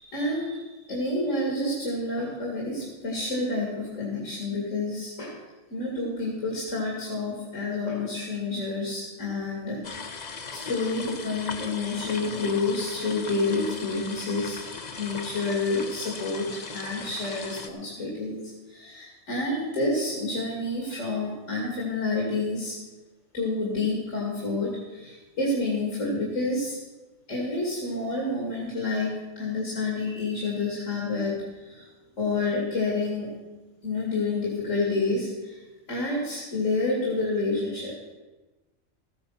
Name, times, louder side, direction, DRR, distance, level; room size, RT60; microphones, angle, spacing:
voice 1, 0.0-5.4 5.7-18.4 18.7-22.8 23.3-26.8 27.3-29.1 29.4-31.9 32.2-33.3 33.8-38.1, left 2 dB, 65° left, -2 dB, 2.9 m, -29 dB
sound 1, 9.8-17.7, left 5 dB, 40° left, 0.8 m, -38 dB
14.0 x 9.6 x 5.8 m, 1.2 s
omnidirectional pair, 1.4 m